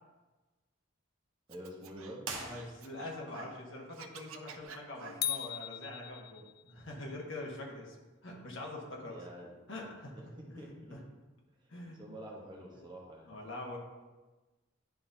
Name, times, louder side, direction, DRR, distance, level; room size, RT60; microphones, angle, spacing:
voice 1, 1.5-2.3 9.1-9.5 10.4-11.0 12.0-13.3, right 1 dB, 20° right, -2 dB, 1.0 m, -47 dB
Scratching (performance technique), 1.5-3.6 3.9-5.5, right 5 dB, 90° right, 0.6 m, -50 dB
sound 1, 2.2-3.2, right 4 dB, 65° right, 1.0 m, -43 dB
voice 2, 2.3-8.0 8.2-9.2 9.7-10.1 10.5-11.0 11.7-12.0 13.2-13.8, left 2 dB, 65° left, -1 dB, 1.3 m, -44 dB
sound 2, 5.2-6.8, left 11 dB, 45° left, 0.3 m, -38 dB
10.5 x 3.8 x 2.7 m, 1.2 s
head